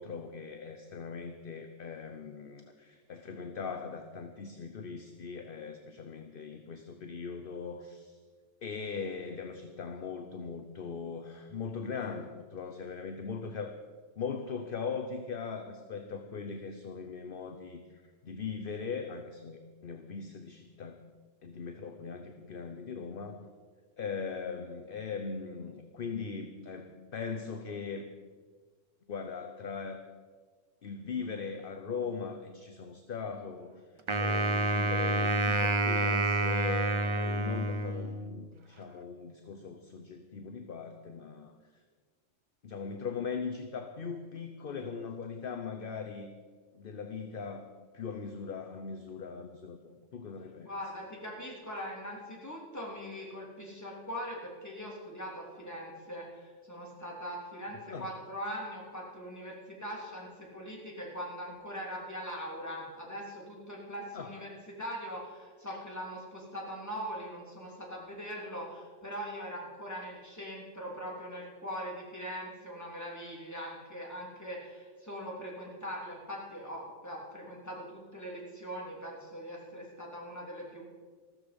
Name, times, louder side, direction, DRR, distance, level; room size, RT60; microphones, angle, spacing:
voice 1, 0.0-8.2 8.6-13.8 14.2-21.0 21.4-23.4 24.0-28.1 29.1-30.0 30.8-33.7 34.2-41.5 42.6-46.3 46.7-50.7 57.9-58.1 64.1-64.3 65.7-65.8, left 5 dB, 50° left, 6 dB, 0.9 m, -40 dB
Wind instrument woodwind instrument, 34.1-38.4, right 2 dB, 30° right, 0.7 m, -28 dB
voice 2, 50.6-80.8, equal, 15° left, -3 dB, 3.1 m, -41 dB
14.5 x 13.5 x 5.2 m, 1.5 s
omnidirectional pair, 1.3 m